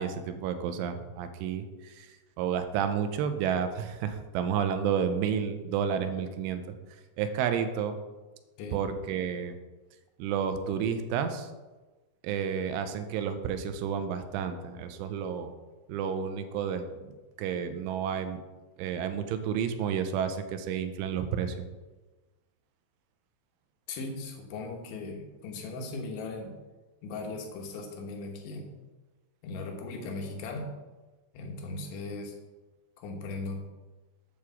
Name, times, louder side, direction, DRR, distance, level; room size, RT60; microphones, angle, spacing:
voice 1, 0.0-2.1 2.4-6.8 7.2-8.0 8.7-9.6 10.2-11.5 12.2-15.5 15.9-18.4 18.8-21.6, right 7 dB, 90° right, 8 dB, 3.1 m, -31 dB
voice 2, 23.9-26.6 27.0-28.7 29.4-30.7 31.3-32.4 33.0-33.7, left 3 dB, 75° left, 2 dB, 3.5 m, -38 dB
8.6 x 4.7 x 7.2 m, 1.2 s
omnidirectional pair, 5.5 m